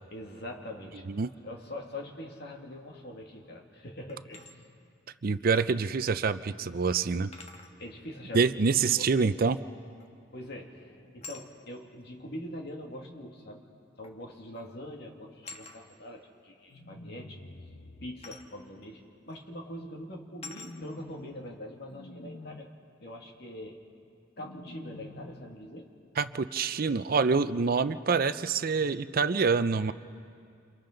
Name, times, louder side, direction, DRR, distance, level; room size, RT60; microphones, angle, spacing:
voice 1, 0.1-4.7 7.8-8.5 9.0-9.1 10.3-13.6 14.0-17.4 18.0-22.7 23.0-23.8 24.4-25.9, left 1 dB, 55° left, 1 dB, 2.2 m, -43 dB
sound 1, 4.1-4.5 6.1-6.2 7.3-7.8 10.0-10.3 11.2-11.5 12.7-12.8 14.0-14.2 14.5-14.8 15.4-15.8 18.2-18.5 19.3-19.4 20.4-20.8, left 4 dB, 35° left, 1.4 m, -46 dB
voice 2, 5.2-7.3 8.3-9.6 26.2-29.9, right 5 dB, 50° right, 13 dB, 0.5 m, -26 dB
sound 2, 16.7-18.1 20.4-21.6 21.9-22.6 24.4-25.6, left 2 dB, 80° left, 1.1 m, -47 dB
29.0 x 28.0 x 3.9 m, 2.4 s
head